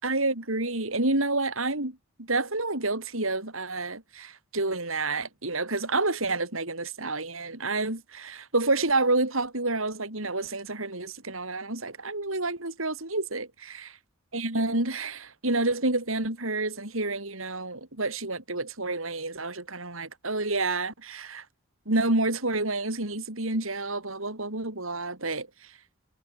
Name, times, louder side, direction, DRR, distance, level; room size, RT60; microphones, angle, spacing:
voice 1, 0.0-13.9 14.3-21.4 21.9-25.5, right 2 dB, 70° right, 5.8 m, -29 dB
head